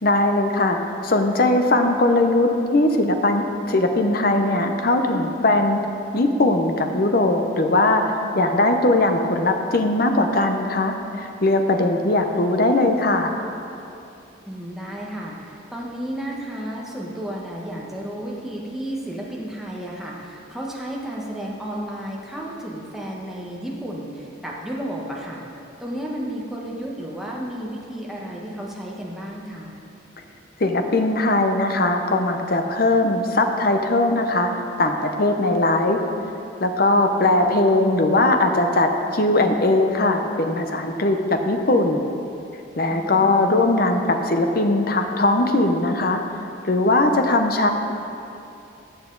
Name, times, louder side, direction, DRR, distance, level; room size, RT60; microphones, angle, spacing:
voice 1, 0.0-5.9 6.1-8.0 8.3-13.3 30.6-34.5 34.8-36.0 36.6-42.0 42.8-46.2 46.6-47.7, left 2 dB, 45° left, 5 dB, 0.8 m, -20 dB
voice 2, 14.5-25.4 25.8-29.7 37.2-37.7 42.9-43.4, right 1 dB, ahead, -4 dB, 1.2 m, -32 dB
14.0 x 8.1 x 3.9 m, 2.7 s
head